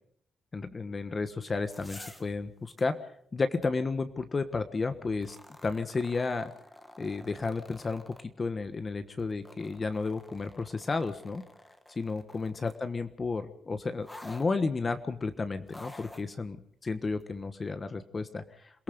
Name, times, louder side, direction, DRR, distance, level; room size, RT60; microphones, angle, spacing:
voice 1, 0.5-3.0 3.3-5.4 5.6-6.5 7.0-11.4 12.0-16.6 16.8-18.8, left 4 dB, 25° left, 10 dB, 1.3 m, -32 dB
sound 1, 1.5-2.3 2.7-2.8 5.1-8.2 9.2-12.8 14.0-14.5 15.7-16.3 17.2-17.3, left 1 dB, 10° left, 1.7 m, -50 dB
27.5 x 18.5 x 5.1 m, 0.65 s
cardioid pair, 145°, 0 cm